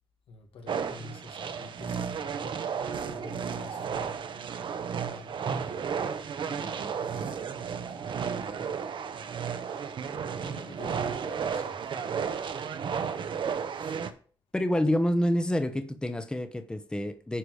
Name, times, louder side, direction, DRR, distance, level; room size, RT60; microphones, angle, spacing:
voice 1, 0.3-5.8 6.4-8.8 10.0-12.5 12.8-13.0 13.7-14.2, left 3 dB, 85° left, 2.0 m, -49 dB
sound 1, 0.7-14.1, right 6 dB, 60° right, 0.9 m, -33 dB
voice 2, 14.5-17.4, equal, 10° left, 0.9 m, -27 dB
10.0 x 4.8 x 4.9 m
cardioid pair, 100°, 9 cm